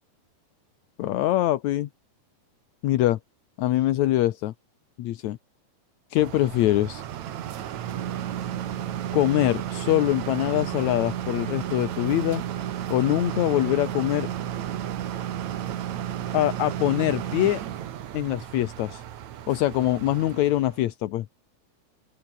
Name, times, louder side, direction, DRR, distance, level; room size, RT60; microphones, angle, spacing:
voice 1, 1.0-1.9 2.8-3.2 3.6-4.5 5.0-5.4 6.1-7.0 9.1-12.4 12.9-14.3 16.3-17.6 18.1-19.0 19.5-21.3, left 14 dB, 70° left, 1.8 m, -23 dB
sound 1, 6.2-20.8, right 11 dB, 60° right, 2.4 m, -33 dB
open air
omnidirectional pair, 4.3 m